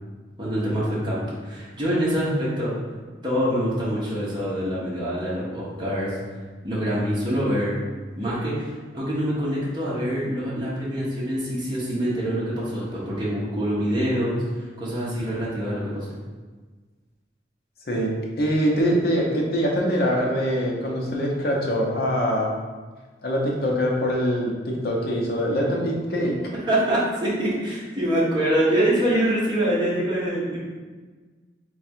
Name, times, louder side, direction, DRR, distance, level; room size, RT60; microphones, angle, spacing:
voice 1, 0.4-2.8 3.2-6.2 6.6-7.7 8.2-16.1 26.7-30.6, equal, 25° right, -8 dB, 0.9 m, -25 dB
voice 2, 18.4-22.5 23.2-26.4, equal, 55° left, -2 dB, 0.7 m, -23 dB
3.4 x 2.4 x 4.3 m, 1.4 s
head